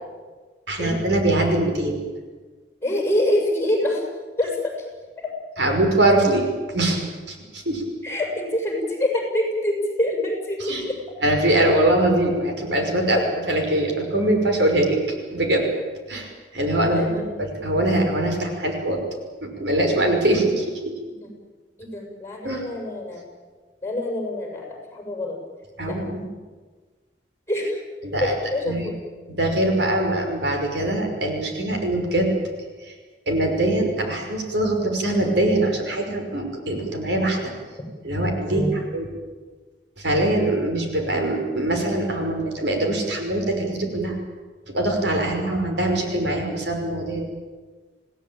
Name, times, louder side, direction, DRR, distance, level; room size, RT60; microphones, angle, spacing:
voice 1, 0.7-2.0 5.6-7.0 7.3-7.8 10.6-10.8 11.2-13.2 13.5-15.0 15.3-15.6 16.1-19.0 19.6-21.0 22.4-22.6 25.8-26.3 28.0-28.3 28.7-28.9 29.3-32.3 32.8-32.9 33.3-37.4 38.0-39.1 40.0-44.2 44.7-47.3, right 1 dB, 65° right, 2 dB, 5.7 m, -22 dB
voice 2, 2.8-4.1 4.4-4.6 8.0-11.0 13.2-13.3 16.9-17.3 21.2-21.3 21.8-23.2 23.8-25.4 25.9-26.0 27.5-27.8 28.2-28.9 38.4-38.7 45.3-45.7, left 1 dB, 15° left, 1 dB, 6.8 m, -26 dB
27.5 x 17.5 x 9.1 m, 1.4 s
head